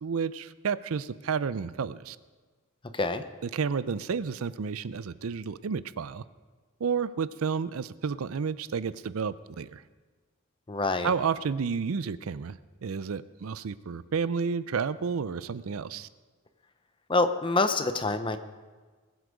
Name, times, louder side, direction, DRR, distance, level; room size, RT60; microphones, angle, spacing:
voice 1, 0.0-2.2 3.4-6.2 6.8-9.8 11.0-12.6 12.8-16.1, right 6 dB, 80° right, 16 dB, 0.5 m, -31 dB
voice 2, 2.9-3.2 10.7-11.1 17.1-18.4, left 3 dB, 25° left, 10 dB, 0.7 m, -26 dB
20.5 x 8.1 x 5.2 m, 1.4 s
head